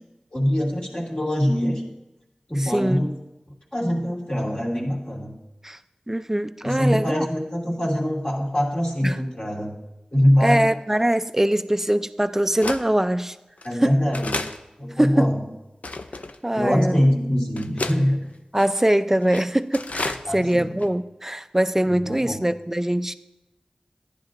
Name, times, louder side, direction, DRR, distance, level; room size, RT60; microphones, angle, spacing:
voice 1, 0.3-1.8 2.5-3.1 3.7-5.3 6.6-9.7 10.1-10.7 13.6-14.4 14.8-15.4 16.5-18.2 20.3-20.7 21.9-22.4, equal, 40° left, -3 dB, 2.5 m, -23 dB
voice 2, 2.6-3.1 5.6-5.8 6.1-7.3 9.0-9.2 10.4-13.4 13.8-14.0 15.0-15.3 16.4-17.0 18.5-23.1, right 1 dB, 15° right, 12 dB, 0.4 m, -22 dB
sound 1, 11.0-11.1 11.8-11.9 12.6-12.8 13.6-13.7 14.1-14.6 15.2-15.3 15.8-16.4 17.0-17.1 17.6-18.0 18.6-18.8 19.2-19.4 19.7-20.2 20.5-20.6 20.8-20.9, left 2 dB, 70° left, 0.5 m, -30 dB
14.5 x 10.5 x 2.6 m, 0.99 s
wide cardioid pair, 55°, 3 cm